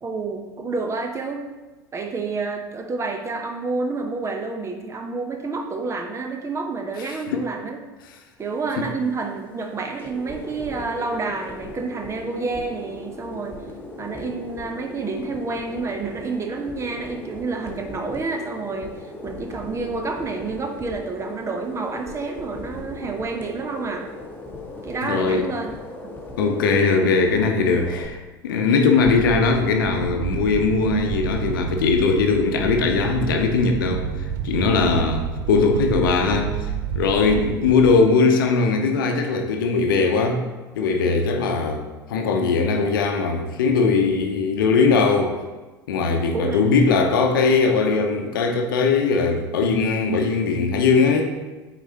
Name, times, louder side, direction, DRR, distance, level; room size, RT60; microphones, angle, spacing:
voice 1, 0.0-1.4 1.9-7.8 8.4-13.6 14.0-24.1 24.8-25.7 26.0-26.1 26.4-26.6 27.0-27.1 46.3-46.9, right 4 dB, 25° right, 4 dB, 0.8 m, -29 dB
sound 1, 8.4-28.1, left 2 dB, 15° left, 1.2 m, -38 dB
voice 2, 25.0-25.5 26.4-34.1 34.4-36.7 36.9-40.4 40.8-45.4 45.9-51.3, left 4 dB, 65° left, 4 dB, 0.8 m, -20 dB
sound 2, 29.0-38.0, right 8 dB, 55° right, 0.5 m, -30 dB
7.9 x 4.1 x 2.9 m, 1.2 s
figure-of-eight pair, 75°, 12 cm